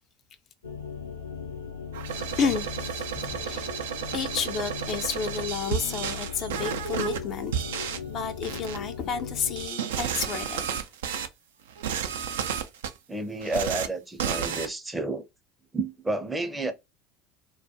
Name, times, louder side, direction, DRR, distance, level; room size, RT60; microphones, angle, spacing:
sound 1, 0.6-9.7, left 6 dB, 85° left, 0.6 m, -38 dB
sound 2, 1.9-7.2 7.5-8.0 8.4-8.8 9.6-11.3 11.7-12.9 13.4-13.9 14.2-14.7, right 8 dB, 75° right, 0.4 m, -32 dB
voice 1, 2.1-3.7 4.1-10.7, left 6 dB, 45° left, 0.4 m, -31 dB
voice 2, 13.1-15.3 15.7-16.7, right 2 dB, 10° right, 0.5 m, -30 dB
2.3 x 2.1 x 2.7 m
hypercardioid pair, 70°, 0 cm